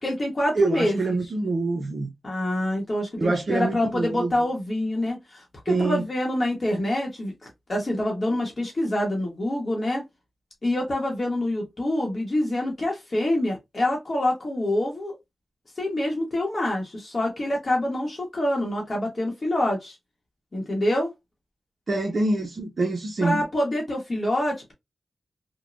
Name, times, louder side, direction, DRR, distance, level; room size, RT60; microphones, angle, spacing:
voice 1, 0.0-1.0 2.2-10.0 10.6-15.2 15.8-20.0 20.5-21.1 23.2-24.7, left 1 dB, 40° left, 0.9 m, -26 dB
voice 2, 0.5-2.1 3.2-4.4 5.7-6.1 21.9-23.4, right 3 dB, 50° right, 0.5 m, -25 dB
3.0 x 2.1 x 2.4 m
wide cardioid pair, 90°, 0 cm